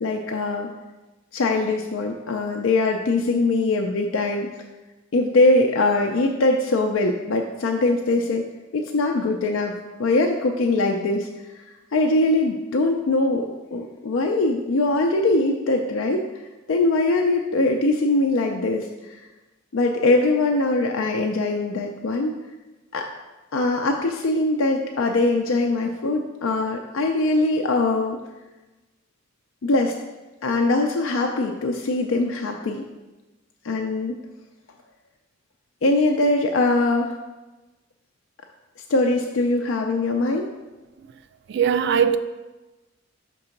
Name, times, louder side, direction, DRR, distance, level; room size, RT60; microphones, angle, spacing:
voice 1, 0.0-0.7 1.3-4.5 5.1-8.4 8.7-9.7 10.0-11.3 11.9-16.2 16.7-19.2 19.7-22.3 22.9-23.0 23.5-28.2 29.6-29.9 30.4-32.8 33.6-34.2 35.8-37.2 38.9-40.4, left 2 dB, 85° left, 0.5 m, -22 dB
voice 2, 41.5-42.2, right 7 dB, 60° right, 0.3 m, -19 dB
5.3 x 3.8 x 5.8 m
head